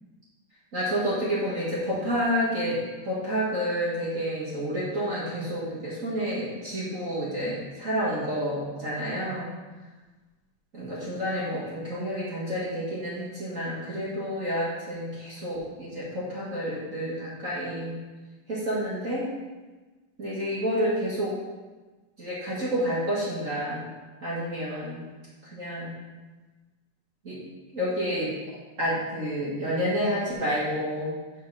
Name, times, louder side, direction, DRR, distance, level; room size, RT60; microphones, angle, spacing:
voice 1, 0.7-2.8 3.0-9.4 10.7-18.0 18.5-19.3 20.2-21.3 22.2-23.9 24.2-25.1 25.5-26.0 27.2-27.4 27.7-28.3 28.8-31.1, equal, 40° right, -9 dB, 1.3 m, -29 dB
5.7 x 5.5 x 5.7 m, 1.2 s
omnidirectional pair, 3.8 m